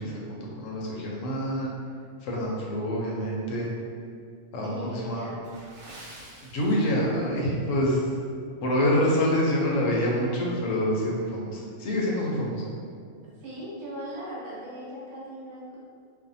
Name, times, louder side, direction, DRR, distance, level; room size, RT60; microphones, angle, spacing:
voice 1, 0.0-1.7 2.2-3.7 4.5-5.3 6.5-8.1 8.6-12.7, equal, 85° left, -3 dB, 1.0 m, -26 dB
voice 2, 4.6-5.4 5.9-6.1 13.4-15.8, right 1 dB, 70° right, -7 dB, 1.0 m, -39 dB
Water / Splash splatter, 5.4-7.3 7.6-7.8 8.4-8.6 9.1-9.2, right 1 dB, 90° right, 1.1 m, -47 dB
2.5 x 2.2 x 2.6 m, 2.2 s
omnidirectional pair, 1.3 m